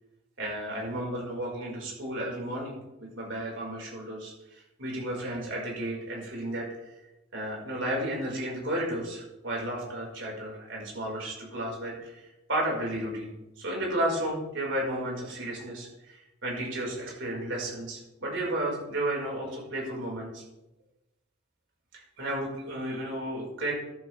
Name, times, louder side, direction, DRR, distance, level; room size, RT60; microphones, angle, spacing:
voice 1, 0.4-6.9 7.3-20.4 21.9-23.7, right 1 dB, 65° right, -2 dB, 5.1 m, -33 dB
13.0 x 11.5 x 3.5 m, 0.99 s
head